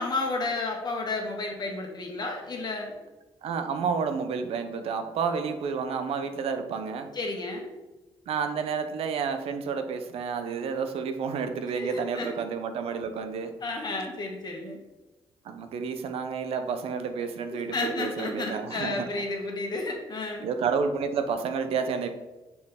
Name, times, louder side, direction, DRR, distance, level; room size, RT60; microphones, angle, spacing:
voice 1, 0.0-2.9 7.1-7.7 11.7-12.3 13.6-14.8 17.5-20.4, left 3 dB, 45° left, 1 dB, 1.5 m, -32 dB
voice 2, 3.4-7.1 8.3-13.5 15.4-19.1 20.4-22.1, right 5 dB, 75° right, 8 dB, 0.6 m, -30 dB
6.4 x 4.3 x 3.5 m, 1.1 s
cardioid pair, 80°, 10 cm